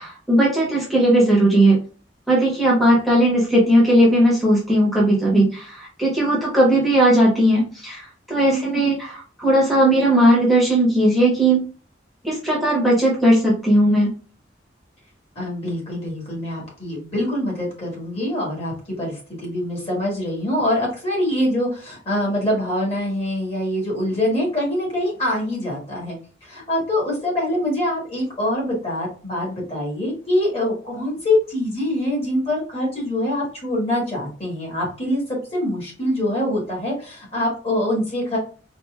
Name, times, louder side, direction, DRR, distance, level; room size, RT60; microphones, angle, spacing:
voice 1, 0.0-1.8 2.3-11.6 12.2-14.1, right 1 dB, ahead, -5 dB, 1.0 m, -17 dB
voice 2, 8.5-8.9 15.3-26.2 26.4-38.4, left 1 dB, 35° left, -2 dB, 1.6 m, -24 dB
4.1 x 2.6 x 2.3 m, 0.38 s
head